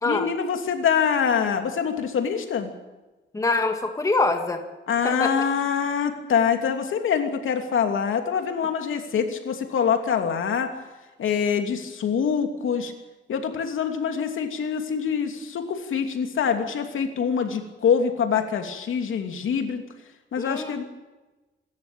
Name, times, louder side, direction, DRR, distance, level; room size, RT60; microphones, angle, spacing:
voice 1, 0.1-2.7 4.9-10.7 11.2-12.9 13.3-19.8 20.3-20.8, left 7 dB, 80° left, 5 dB, 2.9 m, -25 dB
voice 2, 3.3-4.6 5.0-5.3 20.4-20.8, left 3 dB, 15° left, 5 dB, 1.7 m, -24 dB
26.5 x 13.5 x 9.0 m, 1.1 s
wide cardioid pair, 180°, 20 cm